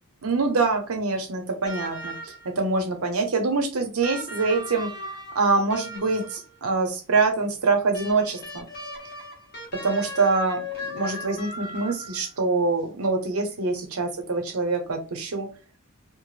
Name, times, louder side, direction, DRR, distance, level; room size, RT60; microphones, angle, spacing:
voice 1, 0.2-4.9 5.3-8.6 9.7-15.5, right 3 dB, 75° right, 5 dB, 0.7 m, -25 dB
sound 1, 1.7-2.6 4.0-6.6 7.9-12.4 13.7-13.8, left 1 dB, 45° left, 0.9 m, -37 dB
2.3 x 2.0 x 3.2 m, 0.34 s
head